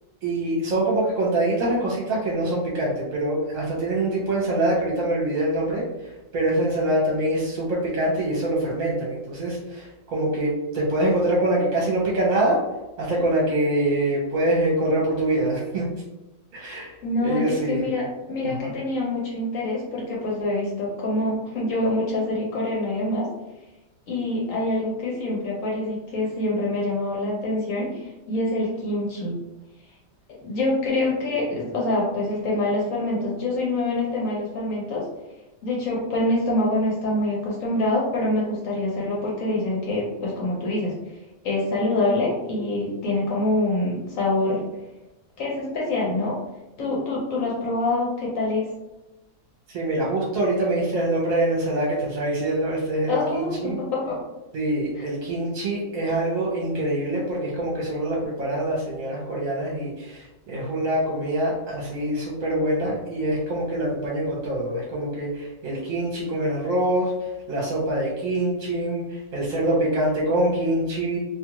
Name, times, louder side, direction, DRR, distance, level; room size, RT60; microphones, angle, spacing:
voice 1, 0.2-5.8 6.3-12.6 13.0-15.8 16.5-16.9 17.2-17.9 18.4-18.7 49.7-53.8 54.5-67.1 67.5-71.2, right 1 dB, 70° right, -5 dB, 1.2 m, -24 dB
voice 2, 17.0-23.3 24.1-29.4 30.4-35.1 35.6-40.9 41.4-44.7 45.4-46.4 46.8-48.7 53.1-54.2, left 2 dB, 65° left, -4 dB, 1.1 m, -25 dB
2.7 x 2.4 x 2.9 m, 1.0 s
omnidirectional pair, 1.6 m